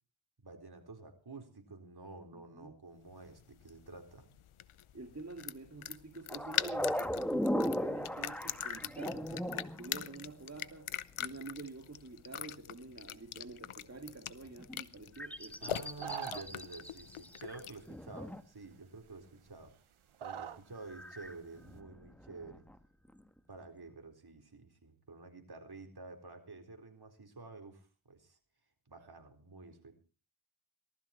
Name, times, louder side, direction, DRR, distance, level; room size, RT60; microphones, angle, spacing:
voice 1, 0.4-4.3 15.6-19.7 20.2-22.7 23.5-28.4 28.9-30.0, right 3 dB, 50° right, 4 dB, 4.1 m, -50 dB
voice 2, 2.3-2.8 4.9-10.9 11.2-16.1, right 3 dB, 30° right, 4 dB, 2.3 m, -48 dB
sound 1, 3.1-17.9, left 10 dB, 90° left, 0.8 m, -43 dB
sound 2, 6.3-10.4 14.5-14.8 15.2-17.6 17.9-18.4 20.9-22.8 23.1-23.2, equal, 5° left, 1.4 m, -38 dB
sound 3, 15.8-16.7 17.8-17.9 18.6-18.7 19.0-19.7 20.1-20.6 20.9-21.4, right 8 dB, 85° right, 1.2 m, -43 dB
18.5 x 13.0 x 4.4 m, 0.36 s
cardioid pair, 50°, 48 cm